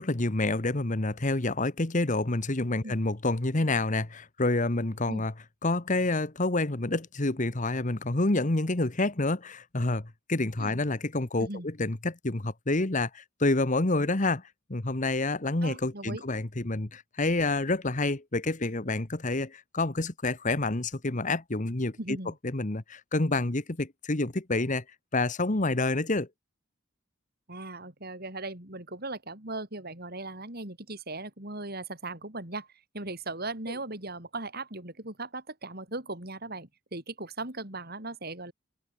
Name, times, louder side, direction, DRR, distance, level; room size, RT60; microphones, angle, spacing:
voice 1, 0.0-5.3 5.6-14.4 14.7-22.2 22.4-24.8 25.1-26.3, left 2 dB, 40° left, 1.4 m, -28 dB
voice 2, 15.6-16.2 22.0-22.4 27.5-32.7 32.9-38.5, right 2 dB, 50° right, 6.3 m, -38 dB
head